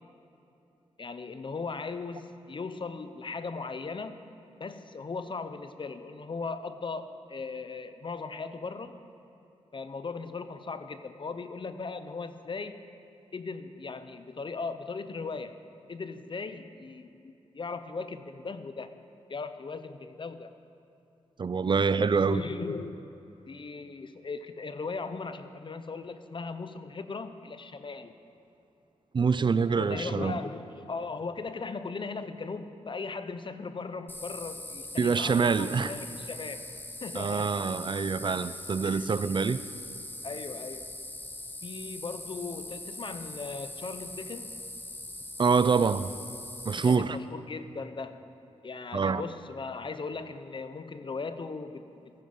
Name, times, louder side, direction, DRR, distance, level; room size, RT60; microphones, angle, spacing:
voice 1, 1.0-4.2 4.6-9.0 9.7-12.8 13.3-15.6 15.9-18.9 19.3-20.5 22.3-23.0 23.5-28.1 29.7-36.6 37.0-37.5 38.8-39.0 40.2-41.0 41.6-44.5 46.8-48.2 48.6-52.1, left 4 dB, 45° left, 10 dB, 0.7 m, -38 dB
voice 2, 21.4-22.4 29.1-30.4 35.0-35.9 37.1-39.6 45.4-46.1 46.7-47.2 48.9-49.2, right 5 dB, 45° right, 14 dB, 0.4 m, -25 dB
sound 1, 34.1-47.0, left 1 dB, 15° left, 1.0 m, -41 dB
14.5 x 10.5 x 5.5 m, 2.9 s
cardioid pair, 70°, 12 cm